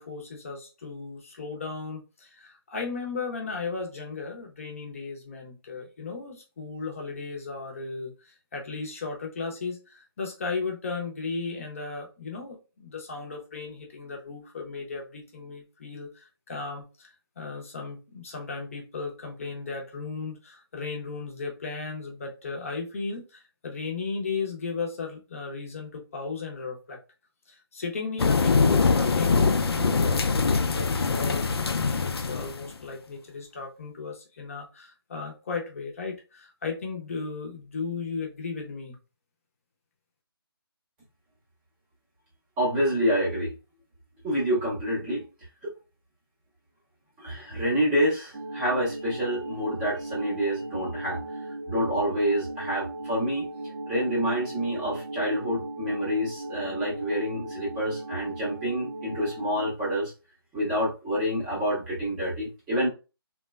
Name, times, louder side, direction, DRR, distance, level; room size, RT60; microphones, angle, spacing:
voice 1, 0.0-27.0 27.5-31.5 31.7-39.0, left 4 dB, 35° left, 0.6 m, -35 dB
Rainy Afternoon with a little thunderstorm, 28.2-32.7, left 4 dB, 85° left, 0.4 m, -23 dB
voice 2, 42.6-43.6 44.2-45.2 45.6-45.7 47.2-51.4 51.7-53.5 53.9-60.1 60.5-62.9, equal, 10° right, 0.6 m, -27 dB
sound 1, 48.3-59.7, right 2 dB, 65° right, 0.6 m, -37 dB
3.0 x 2.1 x 2.2 m
figure-of-eight pair, 160°, 13 cm